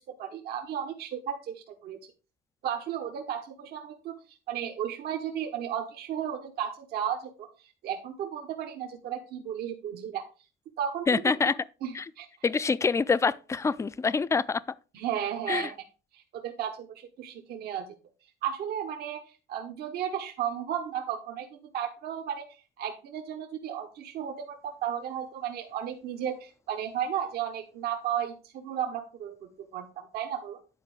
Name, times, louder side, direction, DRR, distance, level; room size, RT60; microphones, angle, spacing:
voice 1, 0.2-2.0 2.6-7.5 7.8-10.2 10.8-11.2 11.8-12.3 14.9-15.8 16.1-17.9 18.4-30.6, right 9 dB, 70° right, 1.0 m, -34 dB
voice 2, 11.1-11.6 11.9-12.0 12.4-14.6 15.5-15.7, left 5 dB, 15° left, 0.4 m, -26 dB
9.6 x 4.3 x 4.7 m
cardioid pair, 110°, 17 cm